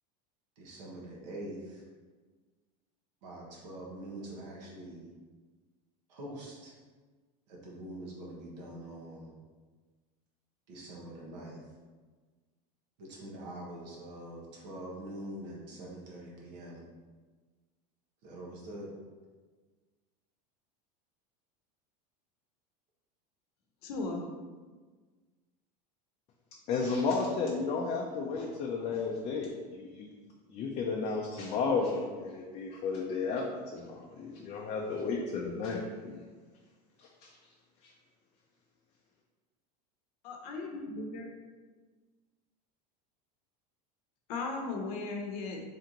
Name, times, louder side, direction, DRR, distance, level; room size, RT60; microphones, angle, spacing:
voice 1, 0.6-1.8 3.2-5.1 6.1-6.7 7.5-9.4 10.7-11.6 13.0-16.9 18.2-18.9, right 1 dB, 90° right, -4 dB, 1.3 m, -44 dB
voice 2, 23.8-24.2 40.2-41.3 44.3-45.6, left 3 dB, 75° left, 2 dB, 0.7 m, -37 dB
voice 3, 26.7-30.1 30.5-33.4 33.7-36.2 37.2-37.3, left 4 dB, 30° left, -1 dB, 0.4 m, -33 dB
3.4 x 2.9 x 3.8 m, 1.4 s
supercardioid pair, 135°, 21 cm